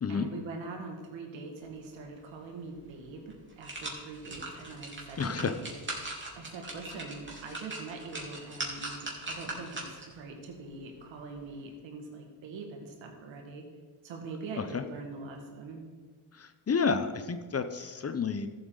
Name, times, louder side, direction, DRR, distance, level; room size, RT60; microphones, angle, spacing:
voice 1, 0.1-13.6 14.0-15.8, right 3 dB, 75° right, 2 dB, 2.2 m, -43 dB
sound 1, 2.7-2.8 3.3-10.2 10.6-10.7, right 2 dB, 25° right, 3.4 m, -40 dB
voice 2, 5.2-5.5 14.7-14.8 16.3-18.5, left 5 dB, 30° left, 9 dB, 0.8 m, -30 dB
14.0 x 7.9 x 4.0 m, 1.5 s
supercardioid pair, 70°, 45 cm